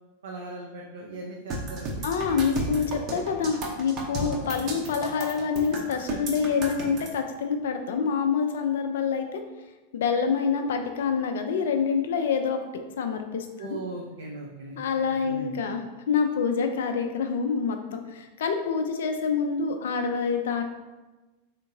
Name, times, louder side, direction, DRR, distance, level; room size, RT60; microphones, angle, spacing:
voice 1, 0.2-2.1 4.1-4.4 13.6-15.5, right 2 dB, 65° right, -1 dB, 0.5 m, -39 dB
sound 1, 1.5-7.1, right 2 dB, 35° right, 0.7 m, -33 dB
voice 2, 2.0-9.4 9.9-12.6 13.0-13.7 14.8-15.8 16.1-20.6, left 6 dB, 60° left, 5 dB, 0.3 m, -26 dB
4.3 x 3.6 x 2.6 m, 1.1 s
figure-of-eight pair, 90°, 0 cm